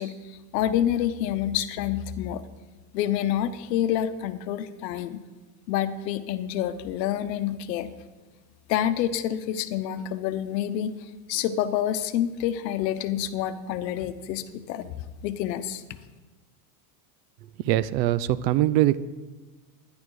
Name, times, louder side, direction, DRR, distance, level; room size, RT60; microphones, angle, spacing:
voice 1, 0.0-2.4 2.9-5.2 5.7-7.9 8.7-14.9 15.2-15.8, left 11 dB, 80° left, 12 dB, 1.0 m, -28 dB
voice 2, 17.6-19.0, right 14 dB, 80° right, 17 dB, 0.7 m, -22 dB
11.5 x 10.5 x 4.7 m, 1.3 s
supercardioid pair, 165°, 49 cm